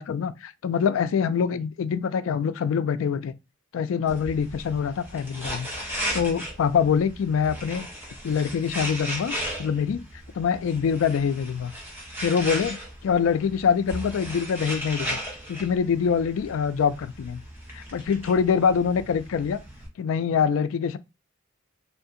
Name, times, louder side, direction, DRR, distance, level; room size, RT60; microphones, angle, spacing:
voice 1, 0.0-3.3 3.7-5.7 6.1-7.9 8.2-9.3 9.6-10.0 10.3-11.7 12.2-12.8 13.0-15.2 15.5-17.4 17.7-19.6 20.0-21.0, left 6 dB, 65° left, 0.3 m, -24 dB
sound 1, 4.1-19.9, equal, 10° right, 0.8 m, -36 dB
2.7 x 2.5 x 3.6 m
head